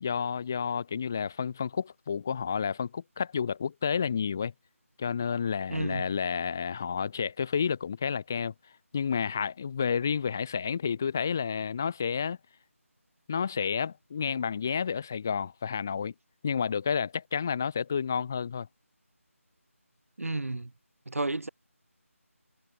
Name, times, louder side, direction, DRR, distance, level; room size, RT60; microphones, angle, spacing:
voice 1, 0.0-4.5 5.0-8.5 8.9-12.4 13.3-16.1 16.4-18.7, left 6 dB, 10° left, 0.4 m, -30 dB
voice 2, 5.7-6.1 20.2-20.7 21.1-21.5, right 2 dB, 70° right, 0.5 m, -32 dB
figure-of-eight pair, 160°, 8 cm